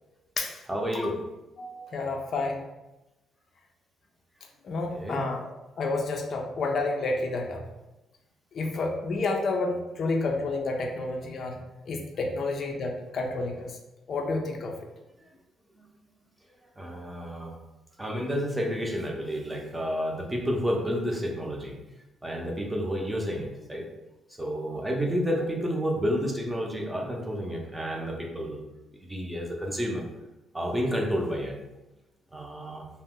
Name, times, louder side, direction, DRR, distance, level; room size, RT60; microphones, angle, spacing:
voice 1, 0.7-1.2 4.9-5.3 15.7-15.8 16.8-17.6 18.0-21.7 22.2-23.8 24.4-28.6 29.0-30.0 30.5-31.5 32.3-32.9, equal, 10° right, 0 dB, 0.6 m, -30 dB
voice 2, 1.6-2.7 4.6-5.5 5.8-7.6 8.5-11.6 11.9-13.7 14.1-14.7, left 3 dB, 55° left, 1 dB, 0.4 m, -30 dB
2.6 x 2.0 x 3.6 m, 1.0 s
cardioid pair, 90°, 0 cm